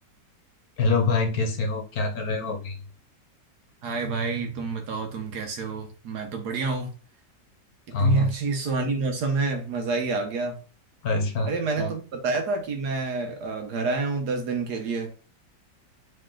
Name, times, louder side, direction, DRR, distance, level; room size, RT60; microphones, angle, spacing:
voice 1, 0.8-2.8 7.9-8.3 11.0-11.5 11.8-11.9, left 3 dB, 60° left, 3 dB, 1.3 m, -25 dB
voice 2, 3.8-6.9 8.0-10.6 11.4-15.2, right 3 dB, 65° right, 5 dB, 1.4 m, -28 dB
4.1 x 3.3 x 3.8 m, 0.37 s
omnidirectional pair, 2.0 m